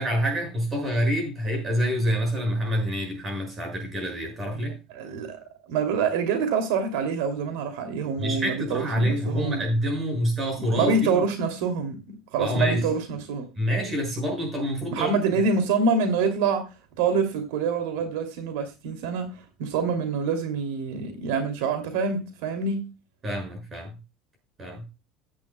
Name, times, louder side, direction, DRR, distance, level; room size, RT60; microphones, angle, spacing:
voice 1, 0.0-4.8 8.2-11.2 12.4-12.9 13.6-15.2 23.2-24.0 24.6-24.9, equal, 20° right, 6.3 m, -27 dB
voice 2, 4.9-5.4 5.7-9.6 10.8-12.0 12.3-13.5 14.9-16.6 17.0-22.8, right 5 dB, 85° right, 2.8 m, -26 dB
15.0 x 10.5 x 2.3 m
cardioid pair, 175°, 0 cm